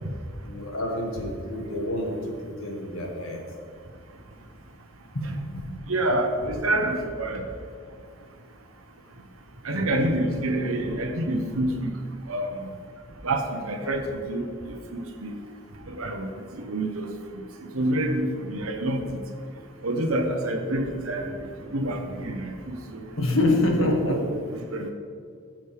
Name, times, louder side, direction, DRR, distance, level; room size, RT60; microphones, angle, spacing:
voice 1, 0.4-3.4 5.1-5.8 23.2-24.2, left 1 dB, 80° left, 1 dB, 1.7 m, -27 dB
voice 2, 5.9-7.4 9.6-11.9 12.3-12.5 13.2-14.5 14.9-15.3 15.9-16.3 16.6-17.1 17.7-19.0 19.8-21.4 21.7-23.0 23.8-24.2 24.7-24.9, right 1 dB, 90° right, 4 dB, 1.0 m, -27 dB
14.0 x 6.3 x 3.5 m, 2.2 s
head